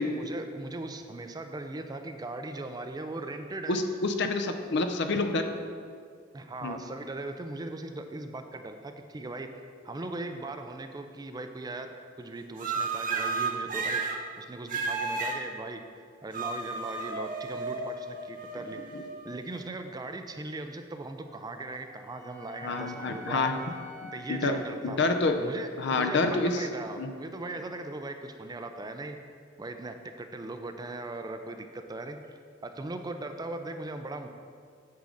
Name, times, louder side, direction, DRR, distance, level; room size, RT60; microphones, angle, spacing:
voice 1, 0.0-3.8 6.3-9.5 9.8-11.9 12.2-15.8 16.2-19.0 19.2-23.5 24.1-25.0 25.3-29.2 29.6-34.3, right 2 dB, 20° right, 7 dB, 0.4 m, -39 dB
voice 2, 3.7-5.5 6.6-6.8 18.9-19.0 22.6-23.5 24.0-24.6 24.8-25.4 25.8-26.6 27.0-27.1, left 3 dB, 60° left, 6 dB, 0.6 m, -28 dB
sound 1, 12.6-14.2 14.7-15.4 16.3-19.6, right 4 dB, 45° right, 0.7 m, -33 dB
Wind instrument woodwind instrument, 21.2-25.4, left 1 dB, 10° left, 0.7 m, -48 dB
8.3 x 3.8 x 6.3 m, 2.1 s
head